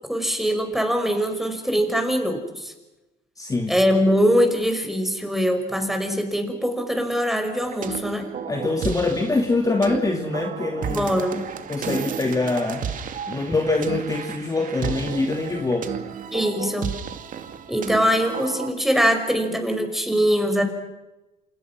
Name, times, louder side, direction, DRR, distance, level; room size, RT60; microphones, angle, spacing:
voice 1, 0.0-2.7 3.7-8.3 10.9-11.4 16.3-16.9 17.7-20.6, equal, ahead, 5 dB, 5.5 m, -22 dB
voice 2, 3.4-3.8 8.5-11.1 11.7-12.9 13.3-15.9, left 3 dB, 20° left, 3 dB, 2.6 m, -24 dB
sound 1, 7.6-18.7, right 7 dB, 50° right, 2.4 m, -33 dB
28.0 x 28.0 x 6.2 m, 1.0 s
cardioid pair, 110°, 17 cm